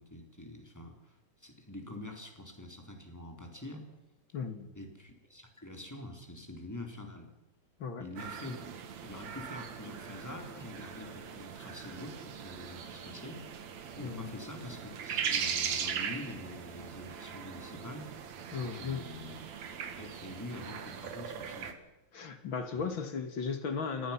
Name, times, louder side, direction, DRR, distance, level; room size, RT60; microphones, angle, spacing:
voice 1, 0.0-3.9 4.7-7.3 8.0-8.6 9.0-13.5 14.0-18.1 18.6-19.4 20.0-21.7 22.7-22.9, left 1 dB, 5° left, 3 dB, 3.2 m, -46 dB
voice 2, 4.3-4.7 7.8-8.1 8.4-8.6 14.0-14.3 18.5-19.0 22.1-24.1, left 5 dB, 45° left, 8 dB, 2.0 m, -36 dB
sound 1, 8.2-21.7, right 7 dB, 55° right, 2.7 m, -40 dB
28.5 x 18.5 x 5.8 m, 1.0 s
omnidirectional pair, 4.1 m